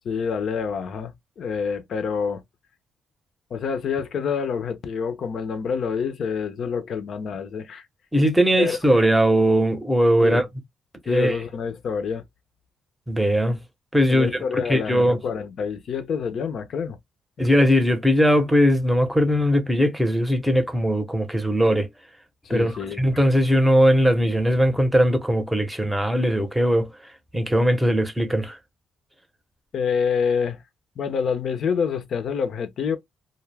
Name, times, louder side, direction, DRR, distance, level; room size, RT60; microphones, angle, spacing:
voice 1, 0.0-2.4 3.5-7.9 8.6-8.8 10.2-10.4 11.1-12.3 14.1-17.0 22.4-23.0 29.7-30.6 31.0-33.0, left 6 dB, 60° left, 0.6 m, -27 dB
voice 2, 8.1-10.4 11.1-11.4 13.1-13.6 13.9-14.3 14.7-15.2 17.4-21.9 22.5-22.7 23.0-26.9 27.3-28.6, equal, 5° right, 0.7 m, -19 dB
2.3 x 2.0 x 3.2 m
cardioid pair, 90°, 0 cm